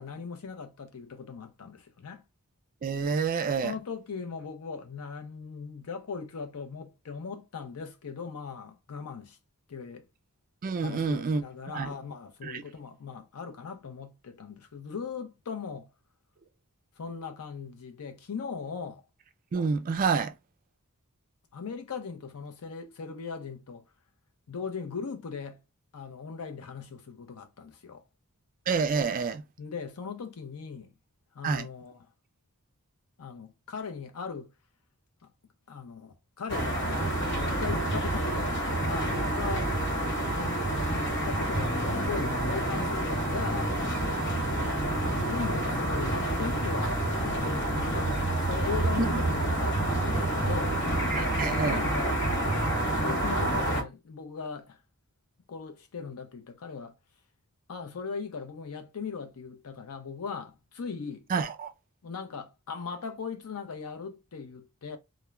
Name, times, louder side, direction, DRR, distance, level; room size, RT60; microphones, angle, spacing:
voice 1, 0.0-2.2 3.5-9.4 9.7-10.0 10.8-15.9 17.0-19.0 21.5-23.8 24.5-25.6 25.9-28.0 29.6-30.9 31.3-32.1 33.2-34.5 35.7-40.0 40.9-44.0 45.1-50.8 51.6-52.1 53.0-54.8 55.5-56.9 57.7-61.2 62.0-65.0, left 5 dB, 70° left, 0.6 m, -39 dB
voice 2, 2.8-3.7 10.6-11.9 12.4-12.6 19.5-20.3 28.7-29.4 31.4-31.7 49.0-49.2 51.1-51.9 61.3-61.7, right 5 dB, 40° right, 0.3 m, -28 dB
sound 1, 36.5-53.8, right 1 dB, 55° left, 1.0 m, -28 dB
2.3 x 2.1 x 3.0 m
head